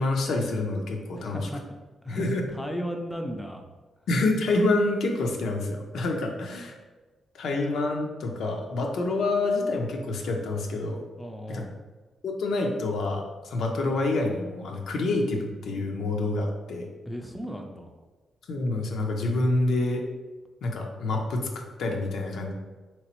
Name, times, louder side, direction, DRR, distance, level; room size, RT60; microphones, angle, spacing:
voice 1, 0.0-1.4 2.1-2.4 4.1-6.7 7.3-11.0 11.5-11.7 12.2-16.9 18.5-20.0 20.6-22.5, left 2 dB, 75° left, 2 dB, 0.5 m, -27 dB
voice 2, 1.1-1.6 2.0-3.6 11.2-11.7 17.1-17.9, equal, 5° left, 3 dB, 0.4 m, -36 dB
3.2 x 3.0 x 2.9 m, 1.3 s
cardioid pair, 90°, 0 cm